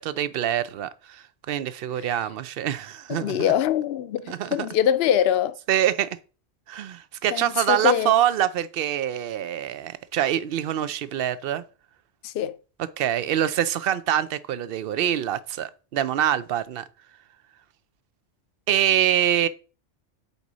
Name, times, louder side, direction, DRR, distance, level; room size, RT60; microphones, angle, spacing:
voice 1, 0.0-3.5 4.3-4.6 5.7-6.1 6.7-11.6 13.0-16.8 18.7-19.5, right 11 dB, 60° right, 0.7 m, -25 dB
voice 2, 3.1-5.6 7.3-8.1 12.2-12.6, left 10 dB, 65° left, 0.8 m, -23 dB
8.1 x 4.7 x 4.0 m
omnidirectional pair, 1.2 m